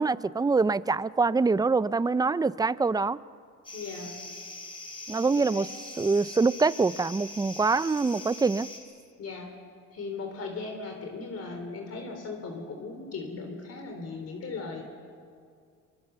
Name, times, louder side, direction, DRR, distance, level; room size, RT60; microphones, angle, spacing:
voice 1, 0.0-3.2 5.1-5.7 6.0-8.7, right 4 dB, 15° right, 17 dB, 0.5 m, -25 dB
sound 1, 3.6-8.8, left 2 dB, 15° left, 6.3 m, -42 dB
voice 2, 3.7-4.2 5.3-5.7 9.2-9.5 9.9-14.8, left 4 dB, 55° left, 3 dB, 3.6 m, -38 dB
23.5 x 23.0 x 6.9 m, 2.2 s
cardioid pair, 90°, 30 cm